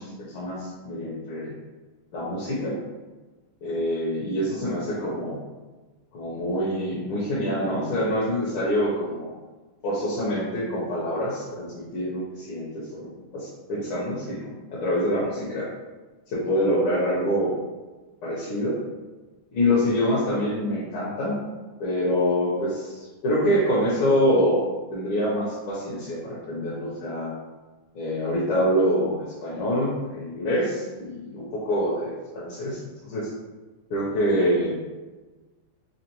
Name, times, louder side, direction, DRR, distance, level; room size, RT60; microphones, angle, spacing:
voice 1, 0.0-1.5 2.1-2.8 3.6-5.4 6.1-9.3 9.8-15.7 16.3-17.5 18.2-18.8 19.5-21.4 21.8-24.6 24.9-27.3 27.9-33.3 33.9-34.8, equal, 75° left, -7 dB, 1.7 m, -26 dB
4.2 x 3.0 x 3.0 m, 1.2 s
omnidirectional pair, 2.4 m